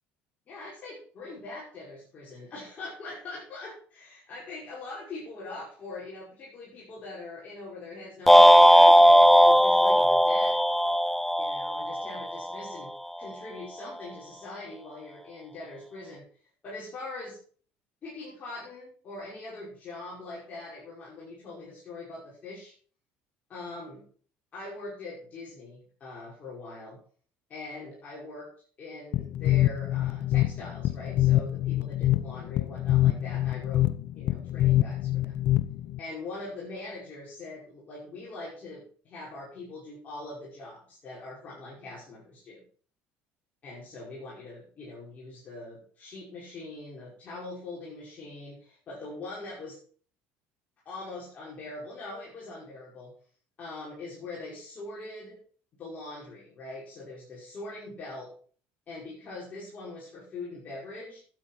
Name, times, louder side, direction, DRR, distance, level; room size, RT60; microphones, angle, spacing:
voice 1, 0.5-10.6 11.4-12.9 13.2-16.3 16.6-17.4 18.0-22.7 23.5-24.0 24.5-27.0 27.5-28.5 28.8-33.9 34.1-35.4 36.0-42.6 43.6-49.8 50.8-53.1 53.6-55.4 55.8-58.3 58.9-61.2, left 2 dB, 35° left, -7 dB, 5.8 m, -42 dB
sound 1, 8.3-12.6, equal, 5° left, 0.5 m, -18 dB
sound 2, 29.1-36.0, left 14 dB, 55° left, 0.8 m, -25 dB
12.0 x 8.7 x 4.5 m, 0.44 s
cardioid pair, 130°, 4 cm